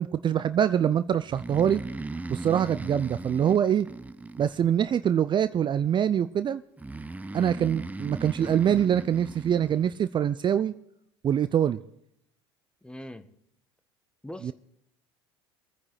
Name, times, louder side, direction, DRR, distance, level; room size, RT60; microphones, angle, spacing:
voice 1, 0.0-1.8 2.3-3.9 4.4-6.6 7.3-10.7 11.2-11.8 14.4-14.5, right 9 dB, 35° right, 13 dB, 0.6 m, -24 dB
Breathing, 1.3-5.0 6.8-9.9, right 2 dB, 10° right, 0.8 m, -38 dB
voice 2, 12.8-13.3 14.2-14.5, left 1 dB, 5° left, 11 dB, 1.4 m, -41 dB
23.5 x 9.7 x 4.0 m, 0.74 s
hypercardioid pair, 70°, 14 cm